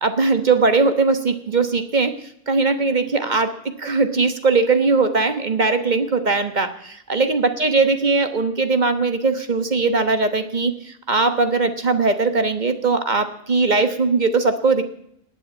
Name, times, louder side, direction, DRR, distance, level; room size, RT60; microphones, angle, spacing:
voice 1, 0.0-2.1 2.5-14.8, right 4 dB, 35° right, 9 dB, 1.3 m, -20 dB
19.5 x 7.9 x 8.4 m, 0.73 s
omnidirectional pair, 1.5 m